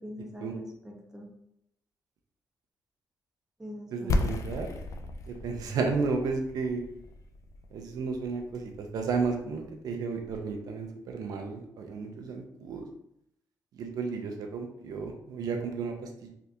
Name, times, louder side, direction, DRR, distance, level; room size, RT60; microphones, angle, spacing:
voice 1, 0.0-1.3 3.6-4.3, equal, 5° right, -1 dB, 0.5 m, -42 dB
voice 2, 3.9-4.7 5.3-6.8 7.7-12.9 13.7-16.3, right 4 dB, 65° right, 3 dB, 0.5 m, -33 dB
sound 1, 4.1-9.8, left 2 dB, 50° left, 0.3 m, -35 dB
3.3 x 2.4 x 2.7 m, 0.78 s
cardioid pair, 155°, 7 cm